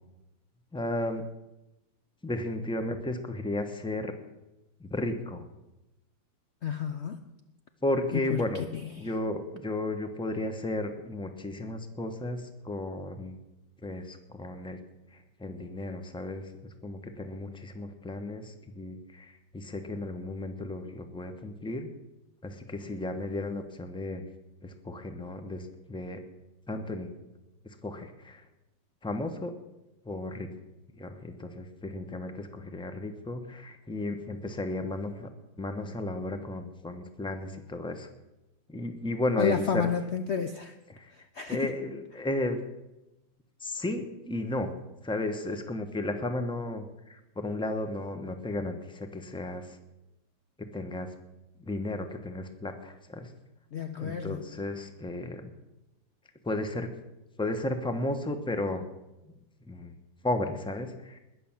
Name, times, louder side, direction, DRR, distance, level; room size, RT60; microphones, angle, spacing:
voice 1, 0.7-1.2 2.2-4.1 4.8-5.5 7.8-8.6 9.0-13.4 13.8-14.8 15.1-16.4 16.8-21.9 22.4-24.2 24.6-26.2 26.7-27.1 27.8-28.4 29.0-29.5 30.0-30.5 31.0-35.3 35.6-38.1 38.7-39.9 40.9-41.1 41.5-42.6 43.6-44.7 45.0-49.8 50.7-51.1 51.6-53.3 54.0-55.5 56.4-56.9 57.4-58.9 59.7-59.9 60.2-61.2, left 2 dB, 5° left, 7 dB, 0.7 m, -34 dB
voice 2, 6.6-7.2 8.3-8.4 8.7-8.8 39.4-40.7 41.3-41.6 53.7-54.4, left 6 dB, 75° left, 8 dB, 0.6 m, -30 dB
20.5 x 6.8 x 7.4 m, 0.98 s
omnidirectional pair, 2.1 m